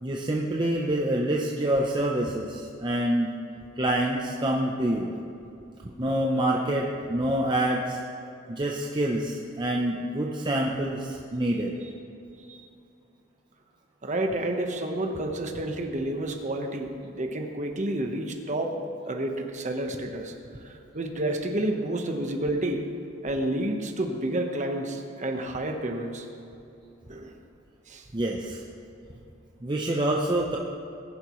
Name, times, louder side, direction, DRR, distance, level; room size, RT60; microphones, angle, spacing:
voice 1, 0.0-3.3 3.8-5.1 6.0-8.0 8.5-11.7 28.1-28.6 29.6-30.6, right 1 dB, 25° right, -2 dB, 0.8 m, -26 dB
voice 2, 14.0-18.8 19.1-20.3 20.6-22.9 23.2-26.3 27.1-27.3 27.9-28.0, right 1 dB, 40° right, 3 dB, 1.2 m, -30 dB
20.0 x 11.0 x 3.2 m, 2.7 s
head